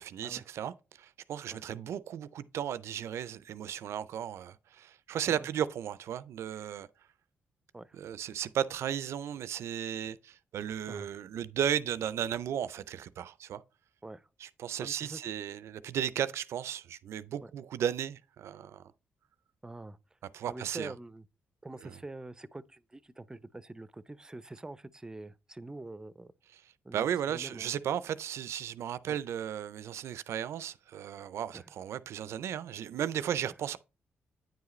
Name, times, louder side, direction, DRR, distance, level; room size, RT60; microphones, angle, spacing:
voice 1, 0.0-6.9 7.9-13.6 14.4-18.8 20.3-20.9 21.8-22.0 26.9-33.8, right 9 dB, 75° right, 0.4 m, -35 dB
voice 2, 14.8-15.2 17.4-17.5 19.6-20.0 20.5-21.3 21.6-26.3 26.8-27.7 29.1-29.2 31.5-31.6 33.5-33.6, right 2 dB, 15° right, 0.5 m, -45 dB
9.1 x 4.8 x 3.1 m
cardioid pair, 70°, 5 cm